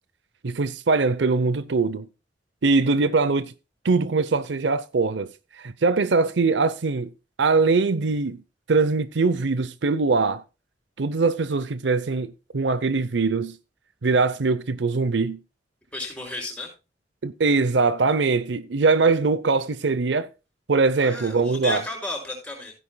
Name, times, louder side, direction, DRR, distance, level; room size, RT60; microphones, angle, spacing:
voice 1, 0.4-2.1 2.6-3.5 3.8-5.3 5.6-7.1 7.4-8.4 8.7-10.4 11.0-13.6 14.0-15.4 17.2-20.3 20.7-21.8, right 4 dB, 70° right, 0.7 m, -22 dB
voice 2, 15.9-16.7 21.0-22.7, left 2 dB, 5° left, 5.8 m, -33 dB
16.0 x 10.0 x 2.2 m
head